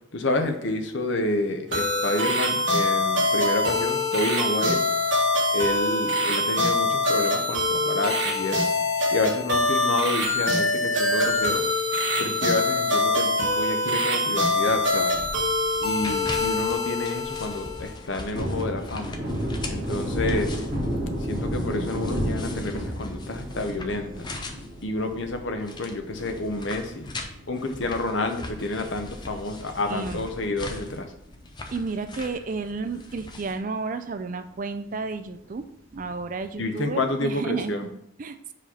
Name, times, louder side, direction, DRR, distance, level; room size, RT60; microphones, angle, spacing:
voice 1, 0.1-4.9 5.5-8.7 9.1-11.6 12.2-15.2 15.8-19.2 19.7-20.6 21.2-24.3 24.8-27.1 27.5-31.1 36.6-37.8, left 2 dB, 60° left, 6 dB, 0.8 m, -29 dB
sound 1, 1.7-17.9, left 2 dB, 60° right, 1.7 m, -24 dB
sound 2, 14.3-33.6, left 2 dB, 20° left, 0.5 m, -40 dB
Thunder, 18.0-28.7 29.0-29.1 29.5-31.0 31.3-31.4 31.8-32.6 33.0-33.1 33.4-33.5 35.9-36.4, equal, 10° right, 2.4 m, -32 dB
voice 2, 29.8-30.2 31.7-35.6 35.9-38.5, right 4 dB, 40° right, 9 dB, 0.4 m, -32 dB
5.0 x 4.1 x 5.6 m, 0.77 s
head